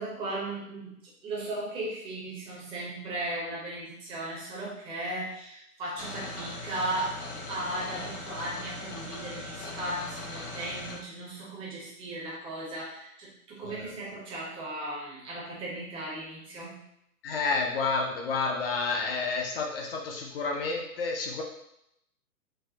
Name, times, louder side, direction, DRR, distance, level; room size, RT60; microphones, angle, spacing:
voice 1, 0.0-16.8, right 1 dB, 10° right, -5 dB, 0.6 m, -36 dB
sound 1, 6.0-11.0, left 2 dB, 80° left, 1.1 m, -39 dB
voice 2, 17.2-21.4, left 4 dB, 40° left, 0 dB, 0.5 m, -30 dB
4.0 x 2.1 x 2.7 m, 0.78 s
hypercardioid pair, 130°, 45 cm